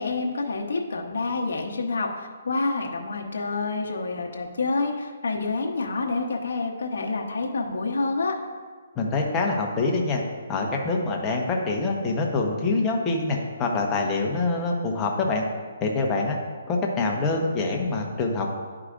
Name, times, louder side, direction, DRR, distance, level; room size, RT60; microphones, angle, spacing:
voice 1, 0.0-8.4, left 3 dB, 70° left, 0 dB, 0.9 m, -28 dB
voice 2, 9.0-10.2 10.5-15.4 15.8-16.4 16.7-18.5, left 3 dB, 20° left, 0 dB, 0.9 m, -25 dB
11.0 x 4.8 x 2.5 m, 1.5 s
hypercardioid pair, 155°, 0 cm